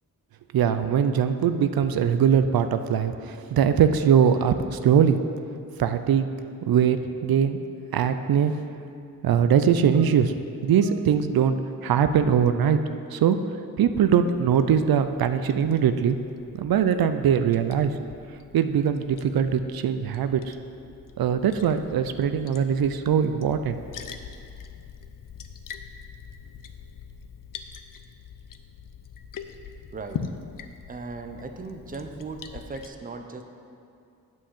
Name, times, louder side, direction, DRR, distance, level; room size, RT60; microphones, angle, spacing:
voice 1, 0.5-5.2 5.8-6.3 6.7-7.6 7.9-8.5 9.2-10.3 10.6-12.8 13.1-13.4 13.8-16.2 16.5-17.9 18.5-20.6 21.2-23.8, right 8 dB, 85° right, 10 dB, 0.5 m, -21 dB
Liquid, 13.9-32.9, left 7 dB, 65° left, 0.5 m, -43 dB
voice 2, 29.9-30.2 30.9-33.4, right 3 dB, 25° right, 6 dB, 0.5 m, -37 dB
8.9 x 4.6 x 7.1 m, 2.5 s
wide cardioid pair, 130°, 35 cm